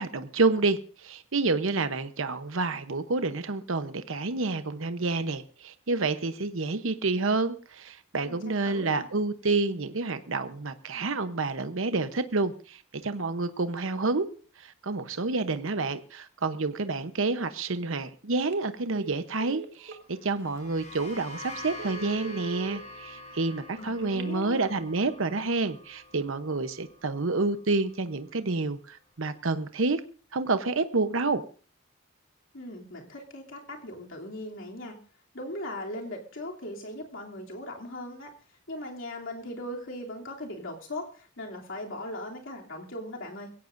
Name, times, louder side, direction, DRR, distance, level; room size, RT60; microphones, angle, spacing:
voice 1, 0.0-14.3 14.6-30.0 30.3-31.4, right 3 dB, 70° right, 10 dB, 0.9 m, -29 dB
voice 2, 8.2-9.1 23.8-24.7 32.5-35.0 35.3-38.3 38.7-43.5, left 1 dB, 65° left, -1 dB, 3.0 m, -39 dB
Telephone, 18.4-18.6 18.9-20.0 20.6-20.7 21.1-21.2 21.7-22.8 24.0-24.6, right 10 dB, 50° right, 1.8 m, -41 dB
sound 1, 20.2-27.8, left 2 dB, 35° left, 6.3 m, -45 dB
22.0 x 16.5 x 2.6 m, 0.39 s
head